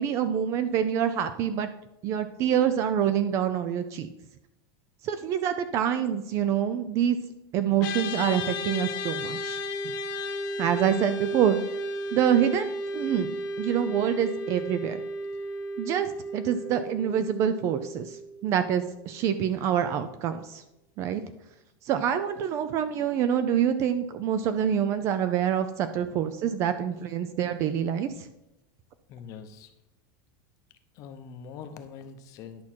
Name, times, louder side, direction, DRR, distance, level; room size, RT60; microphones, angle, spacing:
voice 1, 0.0-1.7 2.0-4.1 5.0-7.2 7.5-9.9 10.6-11.6 12.1-13.3 13.6-15.0 15.8-20.6 21.0-21.2 21.8-28.3, right 9 dB, 25° right, 11 dB, 0.3 m, -26 dB
sound 1, 7.8-19.3, left 1 dB, 55° left, 1.2 m, -34 dB
voice 2, 29.1-29.7 30.9-32.6, left 6 dB, 30° left, 8 dB, 0.7 m, -43 dB
11.0 x 5.9 x 4.4 m, 0.92 s
supercardioid pair, 175°, 12 cm